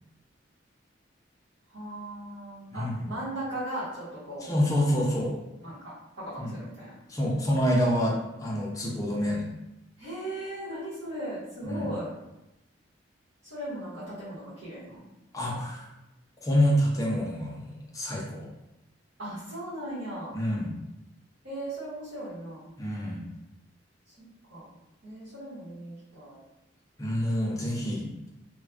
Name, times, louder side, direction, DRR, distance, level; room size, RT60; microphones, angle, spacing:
voice 1, 1.7-4.5 5.6-6.9 10.0-12.1 13.4-15.0 19.2-20.4 21.4-22.7 24.1-24.2 24.5-24.7 25.0-26.4, right 1 dB, 75° right, -12 dB, 1.3 m, -38 dB
voice 2, 2.7-3.1 4.4-5.4 6.4-6.5 7.1-9.5 11.6-11.9 15.3-15.9 16.4-18.5 20.3-20.7 22.8-23.2 27.0-28.3, equal, 20° left, -3 dB, 0.5 m, -27 dB
3.2 x 2.2 x 2.4 m, 0.93 s
head